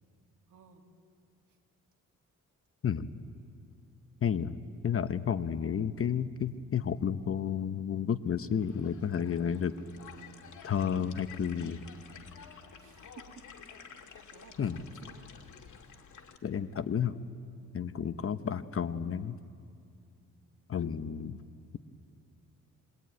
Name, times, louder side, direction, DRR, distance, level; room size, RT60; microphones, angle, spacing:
voice 1, 0.5-0.8 1.5-1.6 12.7-13.5 14.1-15.6 18.2-18.4, right 7 dB, 70° right, 2 dB, 2.7 m, -56 dB
voice 2, 4.2-4.5 4.8-9.8 10.6-11.8 14.6-14.8 16.4-17.2 17.7-19.4 20.7-21.4, left 8 dB, 45° left, 11 dB, 0.9 m, -31 dB
sound 1, 8.5-16.4, left 7 dB, 65° left, 2.1 m, -51 dB
23.5 x 21.5 x 9.3 m, 2.4 s
cardioid pair, 105°, 32 cm